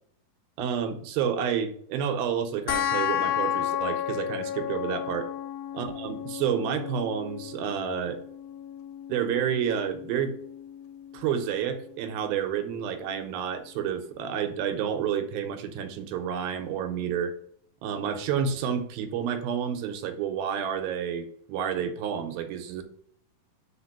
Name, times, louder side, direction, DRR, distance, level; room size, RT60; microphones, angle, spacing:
voice 1, 0.6-5.3 5.7-8.2 9.1-10.3 11.1-17.3 17.8-22.8, right 8 dB, 85° right, 7 dB, 2.4 m, -30 dB
sound 1, 2.7-13.7, left 10 dB, 80° left, 2.3 m, -34 dB
5.1 x 4.4 x 5.6 m, 0.63 s
omnidirectional pair, 4.3 m